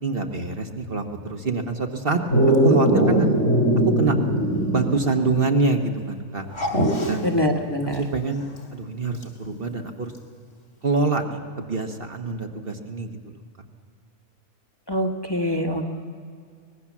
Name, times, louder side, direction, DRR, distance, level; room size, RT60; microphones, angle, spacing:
voice 1, 0.0-2.2 2.6-3.3 4.0-4.2 4.7-6.5 7.1-7.4 8.0-10.1 10.8-13.1, right 3 dB, 45° right, 4 dB, 1.4 m, -25 dB
Dog, 2.3-5.0 5.3-5.4 6.5-7.1 9.2-9.3, right 1 dB, 60° left, 3.2 m, -20 dB
voice 2, 7.2-8.0 14.9-15.9, equal, 20° left, 2 dB, 1.4 m, -24 dB
24.0 x 19.5 x 7.3 m, 2.2 s
omnidirectional pair, 1.4 m